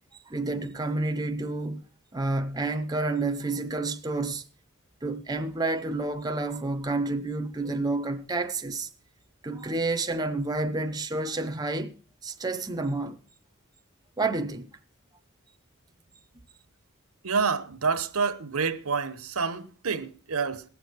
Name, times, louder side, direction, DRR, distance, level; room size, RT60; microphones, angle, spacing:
voice 1, 0.3-1.8 2.1-4.4 5.0-8.9 9.4-11.9 12.2-13.2 14.2-14.7, right 2 dB, 20° right, 0.6 m, -29 dB
voice 2, 17.2-20.6, right 5 dB, 90° right, 1.0 m, -28 dB
19.5 x 7.1 x 4.5 m
head